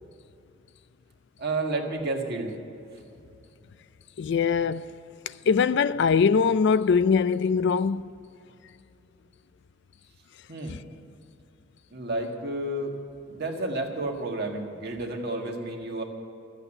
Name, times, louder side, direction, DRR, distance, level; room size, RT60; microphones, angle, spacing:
voice 1, 1.4-2.6 10.5-10.7 11.9-12.9 13.3-16.0, right 2 dB, 55° right, 1.7 m, -31 dB
voice 2, 4.2-4.9 5.5-8.1, left 5 dB, 60° left, 0.4 m, -22 dB
13.5 x 8.1 x 9.9 m
head